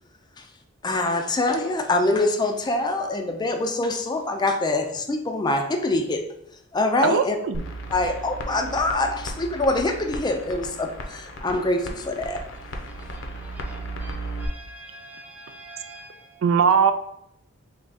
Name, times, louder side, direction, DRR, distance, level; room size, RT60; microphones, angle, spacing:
voice 1, 0.8-6.3 6.7-7.4 7.9-12.4, left 2 dB, 20° left, 5 dB, 0.4 m, -24 dB
voice 2, 7.0-7.6 16.4-16.9, right 6 dB, 90° right, 9 dB, 0.4 m, -19 dB
sound 1, 7.5-14.5, right 1 dB, 75° left, 0.6 m, -35 dB
voice 3, 12.5-16.4, right 1 dB, 10° right, 1 dB, 0.7 m, -46 dB
3.5 x 3.2 x 4.0 m, 0.76 s
head